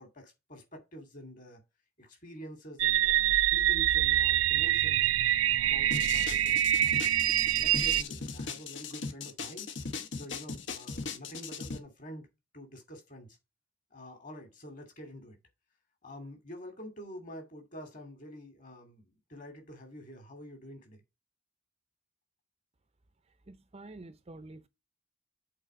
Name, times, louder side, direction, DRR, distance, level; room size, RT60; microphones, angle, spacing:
voice 1, 0.0-1.6 2.0-5.1 5.6-7.1 7.4-9.7 10.1-12.3 12.5-13.4 13.9-15.4 16.0-21.0, equal, 40° left, 2.6 m, -47 dB
sound 1, 2.8-8.0, right 13 dB, 85° right, 0.4 m, -25 dB
sound 2, 5.9-11.8, left 4 dB, 60° left, 1.1 m, -38 dB
voice 2, 23.5-24.7, right 2 dB, 30° right, 0.6 m, -48 dB
8.0 x 4.2 x 4.8 m
head